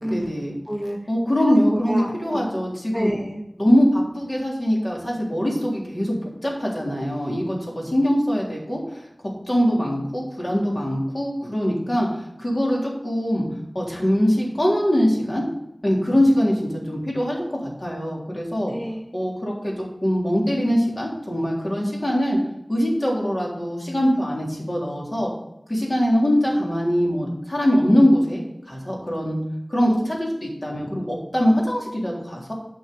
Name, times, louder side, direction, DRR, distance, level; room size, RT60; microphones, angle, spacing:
voice 1, 0.0-0.6 1.1-3.1 3.6-6.1 6.4-9.0 9.5-12.1 12.4-13.4 13.7-15.4 15.8-18.7 19.1-22.4 22.7-25.3 25.7-29.4 29.7-32.5, equal, 45° left, -3 dB, 3.6 m, -22 dB
voice 2, 0.7-1.0 1.4-2.4 2.9-3.4 18.7-19.2, equal, 15° left, -1 dB, 1.2 m, -29 dB
9.1 x 5.5 x 6.8 m, 0.86 s
wide cardioid pair, 40°, 0 cm